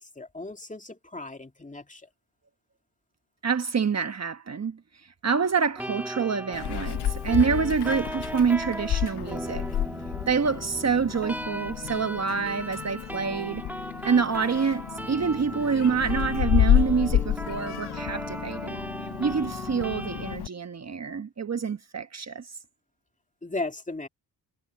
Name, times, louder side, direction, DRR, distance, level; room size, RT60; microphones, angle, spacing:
voice 1, 0.0-2.1 23.4-24.1, left 2 dB, 20° left, 2.5 m, -36 dB
voice 2, 3.4-9.7 10.3-13.6 14.0-18.8 19.2-22.6, right 6 dB, 40° right, 1.4 m, -27 dB
sound 1, 5.8-20.4, right 1 dB, 5° right, 2.1 m, -37 dB
Meow, 6.5-20.5, left 11 dB, 65° left, 0.9 m, -30 dB
cardioid pair, 70°, 42 cm